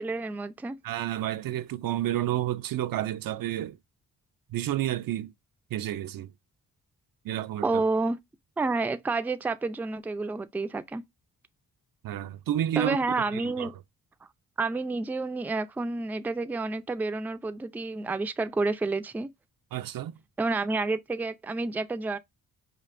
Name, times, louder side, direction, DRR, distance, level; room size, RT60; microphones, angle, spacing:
voice 1, 0.0-0.8 7.6-8.2 8.6-11.0 12.8-13.7 14.6-19.3 20.4-22.2, right 3 dB, 5° right, 0.4 m, -29 dB
voice 2, 0.8-3.8 4.5-5.3 5.7-6.3 7.2-7.8 12.0-13.0 13.3-13.7 19.7-20.2, right 12 dB, 70° right, 0.5 m, -30 dB
5.2 x 2.5 x 2.5 m
cardioid pair, 65°, 36 cm